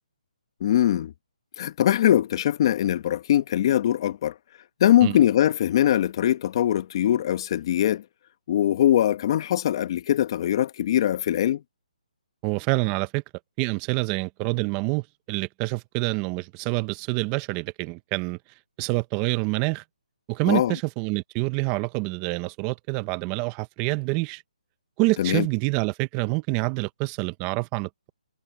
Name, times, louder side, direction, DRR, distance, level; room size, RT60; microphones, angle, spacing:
voice 1, 0.6-1.1 1.6-4.3 4.8-8.0 8.5-11.6 20.5-20.7 25.2-25.5, left 11 dB, 40° left, 1.2 m, -22 dB
voice 2, 12.4-13.2 13.6-18.4 18.8-19.8 20.3-24.4 25.0-28.1, right 24 dB, 20° right, 0.7 m, -27 dB
hypercardioid pair, 160°, 4 cm